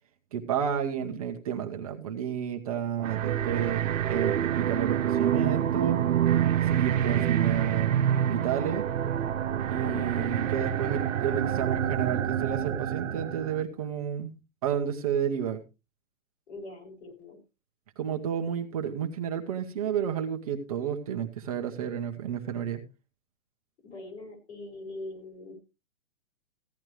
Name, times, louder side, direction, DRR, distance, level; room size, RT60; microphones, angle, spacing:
voice 1, 0.3-6.0 6.6-8.8 9.7-14.3 14.6-15.6 18.0-22.8, right 8 dB, 25° right, 4 dB, 0.8 m, -31 dB
sound 1, 3.0-13.6, right 10 dB, 70° right, 1.0 m, -27 dB
voice 2, 9.7-10.2 16.5-17.4 23.8-25.6, left 2 dB, 55° left, 4 dB, 5.4 m, -42 dB
15.5 x 10.5 x 3.2 m, 0.28 s
hypercardioid pair, 165°, 40 cm